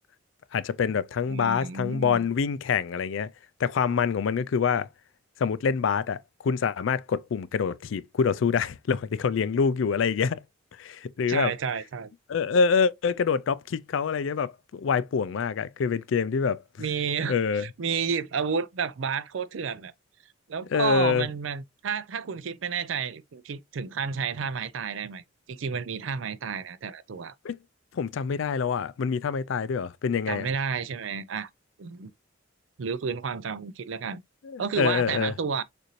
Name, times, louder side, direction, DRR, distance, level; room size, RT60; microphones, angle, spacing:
voice 1, 0.5-3.3 3.6-4.9 5.4-6.2 6.4-10.4 10.8-11.5 12.3-16.6 17.3-17.7 20.7-21.3 27.4-27.6 27.9-30.5 34.4-35.3, left 6 dB, 70° left, 0.4 m, -26 dB
voice 2, 1.3-2.2 11.3-12.1 16.8-19.9 20.5-25.2 25.5-27.3 30.3-31.5 31.8-32.1 32.8-34.2 34.6-35.6, right 6 dB, 75° right, 0.5 m, -31 dB
6.6 x 2.6 x 3.1 m
head